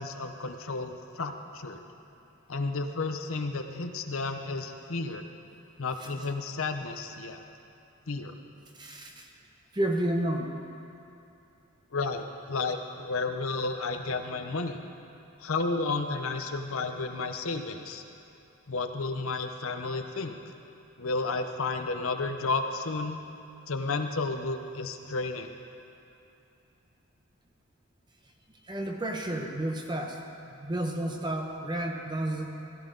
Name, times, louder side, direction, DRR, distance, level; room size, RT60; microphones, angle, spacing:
voice 1, 0.0-1.8 2.5-5.2 5.8-7.4 8.1-8.3 11.9-14.8 15.4-18.0 18.7-20.4 21.0-23.2 23.7-25.5, left 3 dB, 75° left, 6 dB, 0.8 m, -32 dB
voice 2, 8.7-9.2 9.7-10.5 28.7-30.2 30.5-32.5, right 1 dB, 20° right, 2 dB, 1.0 m, -31 dB
16.0 x 14.5 x 3.9 m, 2.7 s
head